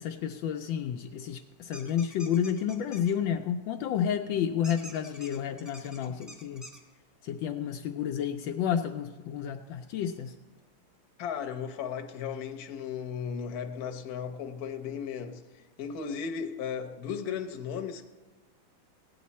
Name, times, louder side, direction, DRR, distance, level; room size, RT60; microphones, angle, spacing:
voice 1, 0.0-6.7 7.2-10.3, left 8 dB, 75° left, 1.3 m, -31 dB
sound 1, 1.7-3.1 4.6-6.8, equal, ahead, 1.1 m, -47 dB
voice 2, 11.2-18.1, left 7 dB, 55° left, 1.2 m, -36 dB
16.5 x 9.3 x 4.2 m
omnidirectional pair, 2.2 m